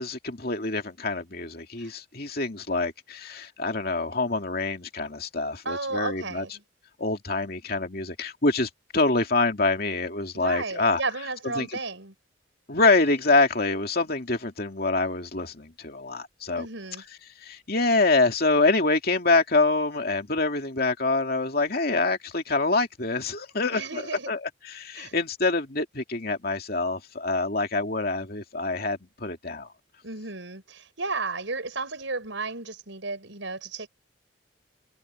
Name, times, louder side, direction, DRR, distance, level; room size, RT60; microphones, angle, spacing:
voice 1, 0.0-6.5 7.0-11.0 11.6-11.8 12.7-16.7 17.4-29.7, left 3 dB, 50° left, 2.6 m, -26 dB
voice 2, 5.6-6.5 10.3-12.1 16.6-17.0 23.7-24.3 24.9-25.1 30.0-33.9, right 3 dB, 75° right, 5.0 m, -33 dB
sound 1, 12.8-14.2 16.6-16.8 18.1-18.2, left 1 dB, 10° left, 7.4 m, -48 dB
head